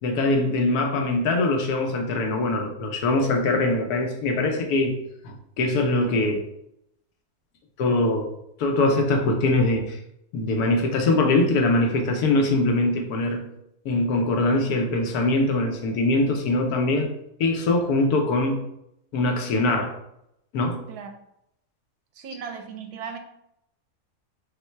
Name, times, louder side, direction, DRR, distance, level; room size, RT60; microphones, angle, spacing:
voice 1, 0.0-5.0 5.2-6.4 7.8-8.3 8.6-10.0 10.3-13.5 13.8-17.1 17.4-18.7 19.1-19.9 20.5-20.8, left 2 dB, 80° left, 3 dB, 1.3 m, -22 dB
voice 2, 22.1-23.2, right 6 dB, 90° right, 5 dB, 1.2 m, -36 dB
5.4 x 2.2 x 4.4 m, 0.80 s
omnidirectional pair, 1.6 m